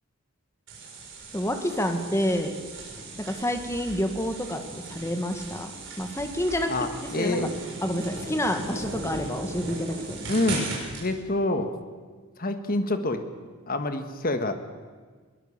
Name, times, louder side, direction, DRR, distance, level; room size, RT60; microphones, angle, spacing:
sound 1, 0.7-11.1, right 2 dB, 55° right, 6.3 m, -38 dB
voice 1, 1.3-2.5 3.2-4.6 4.9-6.7 7.2-7.4 7.8-10.3, equal, 15° left, 6 dB, 1.6 m, -28 dB
voice 2, 6.7-7.5 10.3-10.7 11.0-11.7 12.4-13.2 13.7-14.5, left 2 dB, 40° left, 8 dB, 1.6 m, -27 dB
21.5 x 19.5 x 7.3 m, 1.5 s
head